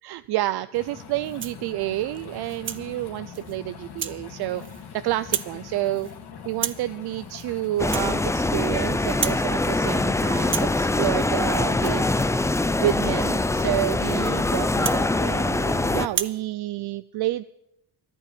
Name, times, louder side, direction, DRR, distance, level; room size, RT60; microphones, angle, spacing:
voice 1, 0.0-4.6 5.0-6.1 6.4-12.1 12.8-17.4, right 15 dB, 65° right, 13 dB, 0.6 m, -29 dB
sound 1, 0.7-9.3, left 6 dB, 70° left, 3.1 m, -42 dB
Rattle (instrument), 1.2-1.7 2.1-2.8 3.3-3.6 4.0-4.2 4.5-4.9 5.2-5.6 5.8-6.2 6.5-6.9 7.3-7.5 7.8-8.8 9.0-9.5 9.8-10.1 10.4-15.7 16.1-16.4, right 7 dB, 30° right, 0.8 m, -34 dB
sound 2, 7.8-16.1, left 2 dB, 5° left, 0.5 m, -23 dB
14.0 x 11.0 x 9.0 m, 0.82 s
cardioid pair, 105°, 41 cm